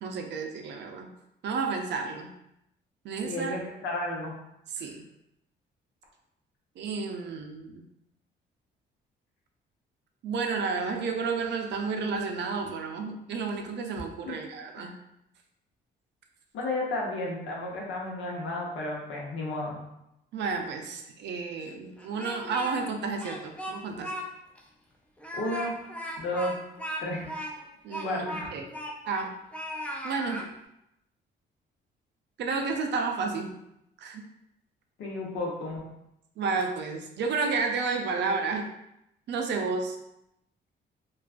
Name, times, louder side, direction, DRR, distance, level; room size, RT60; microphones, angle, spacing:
voice 1, 0.0-1.1 1.4-2.3 3.0-3.5 4.7-5.0 6.8-7.8 10.2-14.9 20.3-24.1 27.8-28.6 29.1-29.3 30.0-30.5 32.4-33.5 34.0-34.2 36.4-38.7 39.3-40.0, right 4 dB, 60° right, 3 dB, 0.4 m, -31 dB
voice 2, 3.3-4.3 4.8-4.9 14.3-14.4 14.8-14.9 16.5-19.8 25.3-25.7 26.2-26.5 27.0-27.3 28.0-28.5 35.0-35.8, left 2 dB, 75° left, -2 dB, 0.8 m, -32 dB
Speech, 22.0-22.9 23.2-24.2 24.6-24.7 25.2-29.3 29.5-30.5, equal, 5° left, 0.3 m, -37 dB
2.3 x 2.2 x 2.4 m, 0.82 s
cardioid pair, 90°, 20 cm